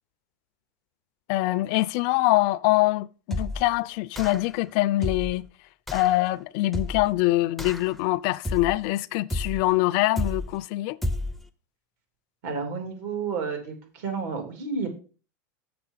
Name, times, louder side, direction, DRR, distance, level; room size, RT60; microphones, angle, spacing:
voice 1, 1.3-5.5 5.9-11.0, left 18 dB, 55° left, 0.4 m, -24 dB
sound 1, 3.3-3.7 4.2-4.6 5.0-5.4 5.9-6.2 6.7-7.2 7.6-8.0 8.4-8.9 9.3-9.7 10.2-10.6 11.0-11.4, left 1 dB, ahead, 0.5 m, -31 dB
voice 2, 12.4-14.9, right 5 dB, 65° right, 3.2 m, -31 dB
6.8 x 6.8 x 5.6 m
supercardioid pair, 135°, 9 cm